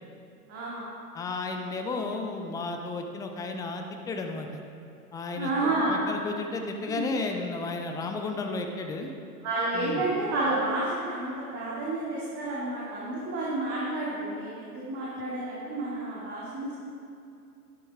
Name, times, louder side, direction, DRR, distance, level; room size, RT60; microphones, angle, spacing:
voice 1, 0.5-0.9 5.4-5.9 6.9-7.1 9.4-16.8, right 2 dB, 30° right, -7 dB, 2.5 m, -30 dB
voice 2, 1.1-4.6 5.1-5.5 5.9-9.1 9.7-10.0, left 3 dB, 10° left, 4 dB, 0.4 m, -33 dB
12.0 x 11.0 x 3.6 m, 2.5 s
figure-of-eight pair, 105°, 47 cm